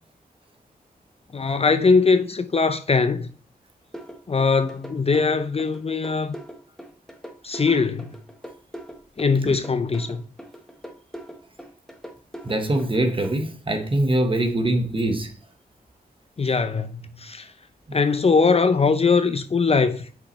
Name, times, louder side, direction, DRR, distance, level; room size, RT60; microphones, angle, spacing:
voice 1, 1.3-3.3 4.3-6.4 7.4-8.1 9.2-10.2 16.4-17.5 17.9-20.1, left 4 dB, 40° left, 0.5 m, -21 dB
sound 1, 3.9-13.3, equal, ahead, 1.2 m, -40 dB
voice 2, 12.4-15.3 17.9-18.0, right 1 dB, 30° right, 1.2 m, -23 dB
6.4 x 5.2 x 3.2 m
cardioid pair, 60°, 17 cm